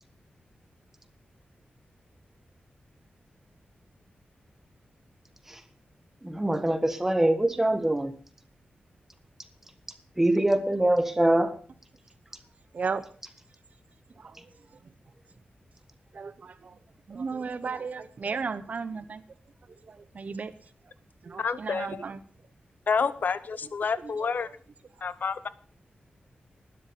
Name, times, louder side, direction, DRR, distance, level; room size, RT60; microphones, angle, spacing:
voice 1, 6.2-8.1 10.2-11.5, right 1 dB, 10° right, 10 dB, 1.3 m, -23 dB
voice 2, 16.1-16.8 17.1-19.2 19.9-20.5 21.2-22.2, right 5 dB, 50° right, 11 dB, 0.7 m, -34 dB
voice 3, 21.4-22.0 22.9-24.5 25.0-25.5, left 5 dB, 60° left, 16 dB, 0.8 m, -29 dB
12.0 x 10.0 x 6.6 m, 0.42 s
wide cardioid pair, 155°, 3 cm